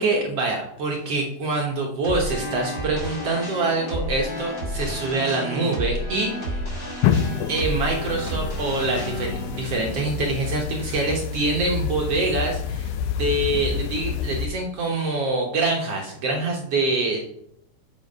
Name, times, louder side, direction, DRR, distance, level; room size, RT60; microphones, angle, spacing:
voice 1, 0.0-6.6 7.5-12.9 13.2-17.3, right 2 dB, 60° right, 0 dB, 1.7 m, -25 dB
sound 1, 2.0-11.2, equal, 30° left, 2.8 m, -32 dB
sound 2, 7.0-14.5, left 8 dB, 80° left, 2.0 m, -28 dB
7.1 x 6.8 x 5.4 m, 0.74 s
omnidirectional pair, 4.2 m